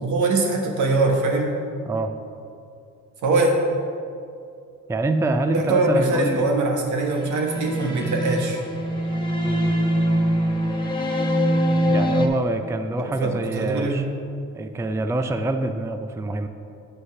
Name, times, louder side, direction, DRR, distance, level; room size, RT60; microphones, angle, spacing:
voice 1, 0.0-1.5 3.2-3.5 5.5-8.6 13.0-14.0, right 2 dB, 75° right, 1 dB, 1.5 m, -22 dB
voice 2, 4.9-6.5 9.4-9.7 11.9-14.0 14.5-16.5, right 2 dB, 10° right, 7 dB, 0.4 m, -25 dB
sound 1, 7.2-12.3, equal, 15° left, 1.2 m, -23 dB
8.1 x 5.3 x 5.9 m, 2.5 s
cardioid pair, 90°, 30 cm